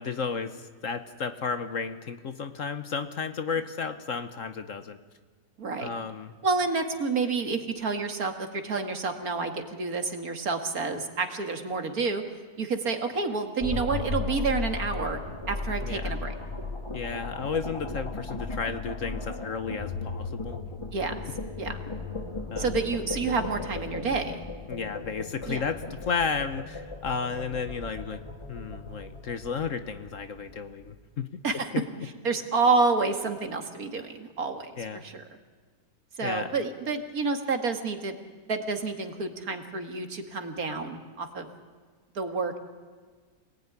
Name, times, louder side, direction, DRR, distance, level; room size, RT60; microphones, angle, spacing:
voice 1, 0.0-5.0 5.8-6.3 15.8-16.2 16.9-20.6 22.5-22.7 24.7-31.8 34.8-35.1 36.2-36.5, left 5 dB, 55° left, 10 dB, 1.3 m, -33 dB
voice 2, 5.6-5.9 6.4-12.2 12.6-15.2 15.5-16.3 20.9-21.1 21.6-21.8 22.6-24.4 25.5-25.6 27.3-27.4 31.4-31.7 32.2-35.2 36.2-38.2 38.5-41.5 42.1-42.6, right 4 dB, 60° right, 6 dB, 2.4 m, -29 dB
sound 1, 13.6-30.8, left 3 dB, 20° left, 1.8 m, -36 dB
27.0 x 19.0 x 9.8 m, 1.5 s
omnidirectional pair, 1.7 m